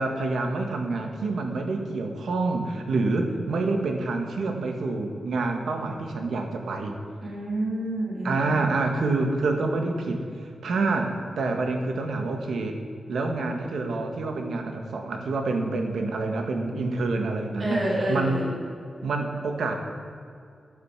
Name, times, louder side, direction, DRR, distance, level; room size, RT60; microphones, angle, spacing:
voice 1, 0.0-6.9 8.2-12.8 13.1-18.4 19.0-19.8, right 3 dB, 90° right, 4 dB, 1.8 m, -27 dB
voice 2, 7.2-8.7 17.6-18.5, right 1 dB, 25° right, -6 dB, 3.5 m, -28 dB
12.5 x 9.5 x 6.3 m, 2.3 s
wide cardioid pair, 165°, 0 cm